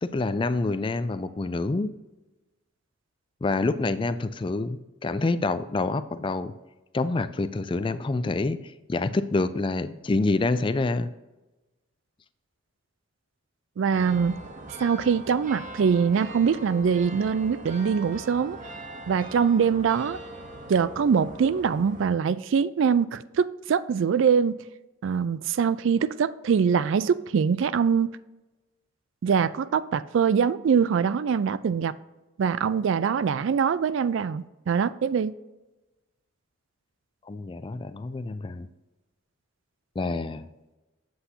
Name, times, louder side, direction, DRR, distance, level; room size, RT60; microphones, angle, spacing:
voice 1, 0.0-1.9 3.4-6.5 6.9-8.6 8.9-11.1 37.3-38.7 40.0-40.5, left 3 dB, 25° left, 0.3 m, -27 dB
voice 2, 13.8-14.4 14.8-18.6 19.1-20.2 20.7-24.6 25.0-28.1 29.2-31.9 32.4-35.3, right 6 dB, 65° right, 0.3 m, -23 dB
sound 1, 13.9-22.1, right 2 dB, 40° right, 0.9 m, -41 dB
8.2 x 7.9 x 2.8 m
head